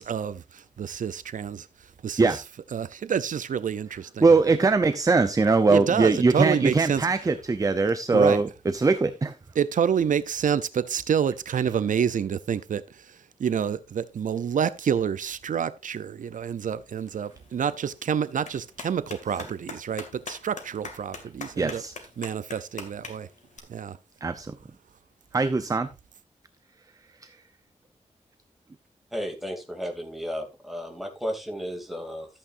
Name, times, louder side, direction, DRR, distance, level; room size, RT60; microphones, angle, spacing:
voice 1, 0.0-2.4 2.7-4.3 5.7-7.1 8.1-8.4 9.6-21.8 22.2-23.3 23.7-24.0, right 8 dB, 80° right, 0.5 m, -28 dB
voice 2, 4.2-9.3 21.6-21.9 24.2-24.5 25.3-25.9 27.2-27.4, right 3 dB, 25° right, 0.6 m, -21 dB
Clapping, 17.0-23.6, left 4 dB, 65° left, 2.3 m, -44 dB
voice 3, 29.1-32.3, equal, ahead, 2.7 m, -33 dB
13.0 x 8.6 x 2.6 m
wide cardioid pair, 140°, 13 cm